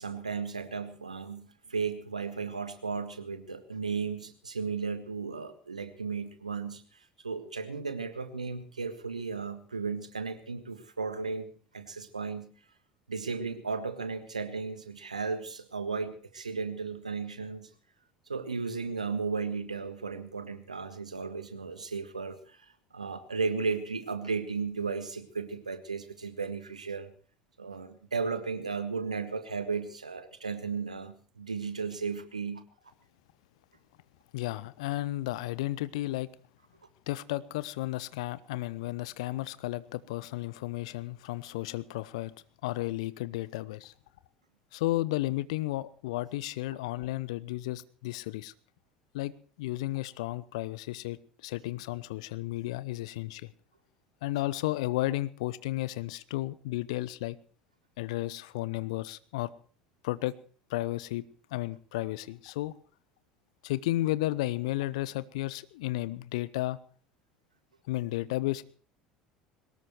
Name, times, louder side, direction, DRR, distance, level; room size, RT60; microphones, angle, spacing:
voice 1, 0.0-12.5 13.1-17.7 18.3-27.1 27.6-32.6, right 5 dB, 80° right, 11 dB, 1.6 m, -35 dB
voice 2, 34.3-36.3 37.1-42.3 42.6-43.9 44.7-48.5 49.1-49.3 49.6-51.2 51.4-53.5 54.2-57.4 58.0-59.5 60.0-60.4 60.7-61.2 61.5-62.7 63.6-66.8 67.9-68.6, left 17 dB, 60° left, 18 dB, 0.8 m, -33 dB
22.0 x 19.0 x 3.1 m, 0.42 s
figure-of-eight pair, 65°, 4 cm